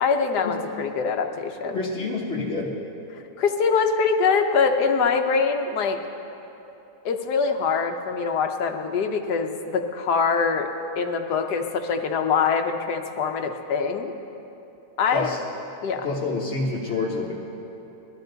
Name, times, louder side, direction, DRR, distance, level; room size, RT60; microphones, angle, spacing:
voice 1, 0.0-1.8 3.4-6.0 7.0-10.7 11.0-14.1 15.0-15.3 15.8-16.1, left 5 dB, 80° left, 5 dB, 1.4 m, -23 dB
voice 2, 1.7-2.8 15.1-15.4 16.0-17.3, left 3 dB, 45° left, -6 dB, 1.4 m, -27 dB
20.0 x 12.5 x 4.0 m, 2.9 s
omnidirectional pair, 1.7 m